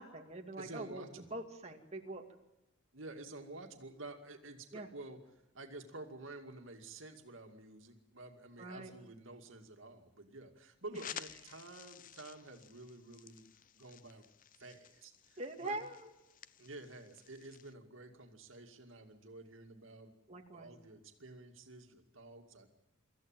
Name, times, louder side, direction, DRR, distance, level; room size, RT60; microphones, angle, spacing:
voice 1, 0.0-2.2 4.7-4.9 8.6-8.9 15.4-16.1 20.3-20.7, right 2 dB, 35° right, 3 dB, 2.2 m, -44 dB
voice 2, 0.6-1.2 2.9-13.4 13.8-14.3 14.6-15.8 16.6-20.1 20.5-22.7, right 2 dB, 75° right, 5 dB, 2.3 m, -50 dB
sound 1, 10.9-17.7, left 9 dB, 40° left, 0.7 m, -53 dB
25.0 x 14.5 x 9.0 m, 1.0 s
head